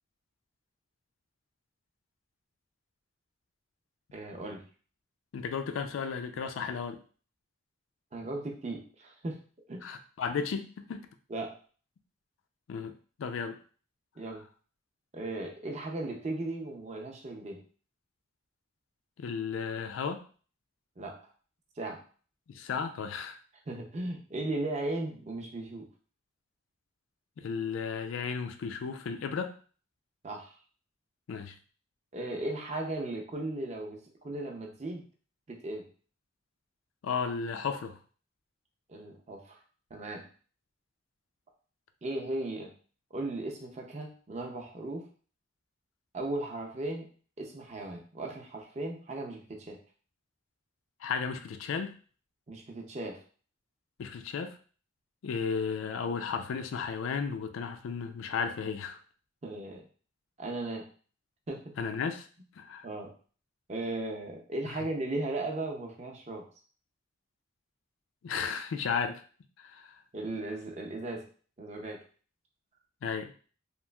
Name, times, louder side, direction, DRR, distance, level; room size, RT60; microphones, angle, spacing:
voice 1, 4.1-4.6 8.1-9.4 9.7-9.9 11.3-11.5 14.2-14.4 15.1-17.6 21.0-21.2 21.8-22.0 23.7-25.9 30.2-30.6 32.1-35.0 35.5-35.9 38.9-39.6 39.9-40.3 42.0-42.7 43.1-45.1 46.1-47.1 47.4-49.8 52.5-53.2 59.4-59.9 60.4-60.9 61.5-61.7 62.8-63.1 63.7-66.4 70.1-71.3 71.6-72.0, right 2 dB, 35° right, 1 dB, 0.5 m, -36 dB
voice 2, 5.3-7.0 9.8-11.1 12.7-12.9 13.2-13.6 19.2-20.2 22.5-23.4 27.4-29.6 31.3-31.6 37.0-38.0 51.0-51.9 54.0-54.6 55.2-59.0 61.8-62.3 62.6-62.9 68.2-69.2 69.6-70.0 73.0-73.3, left 6 dB, 90° left, 8 dB, 0.3 m, -34 dB
3.0 x 2.4 x 2.2 m, 0.41 s
head